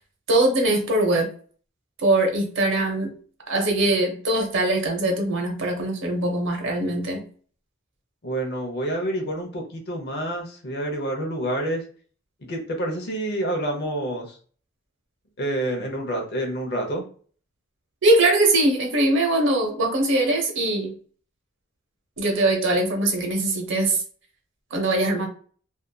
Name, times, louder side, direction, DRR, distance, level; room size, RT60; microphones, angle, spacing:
voice 1, 0.3-1.3 2.0-3.1 3.5-7.2 18.0-20.9 22.2-24.0 24.7-25.3, right 2 dB, 65° right, 2 dB, 0.7 m, -22 dB
voice 2, 8.2-11.8 12.5-14.4 15.4-17.0, right 1 dB, 55° left, 1 dB, 0.7 m, -28 dB
2.7 x 2.4 x 2.2 m, 0.43 s
head